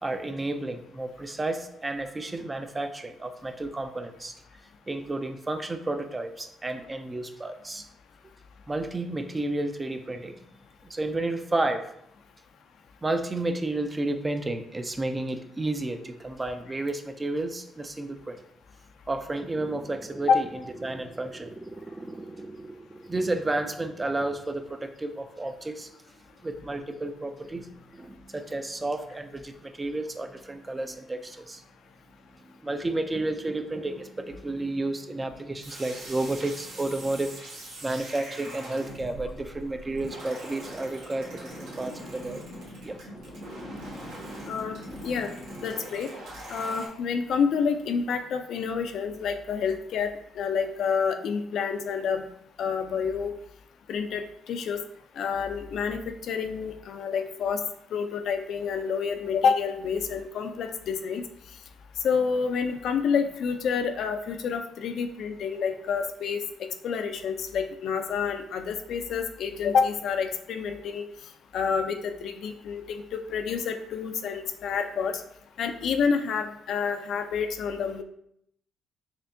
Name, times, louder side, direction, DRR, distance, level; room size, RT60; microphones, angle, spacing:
voice 1, 0.0-4.3 4.9-7.9 8.7-10.4 10.8-11.9 13.0-18.4 19.1-20.5 20.8-25.9 26.4-31.6 32.4-37.3 37.8-42.5 42.8-43.0, right 2 dB, 20° right, 7 dB, 0.4 m, -32 dB
sound 1, 35.6-46.9, right 1 dB, 80° right, 1.1 m, -42 dB
voice 2, 45.6-46.1 46.5-50.1 50.4-52.2 52.6-53.3 53.9-54.8 55.2-57.6 57.9-61.2 62.0-71.0 71.5-73.0 73.3-75.2 75.6-78.0, left 6 dB, 70° left, 7 dB, 0.4 m, -28 dB
4.3 x 2.7 x 2.6 m, 0.73 s
cardioid pair, 90°, 0 cm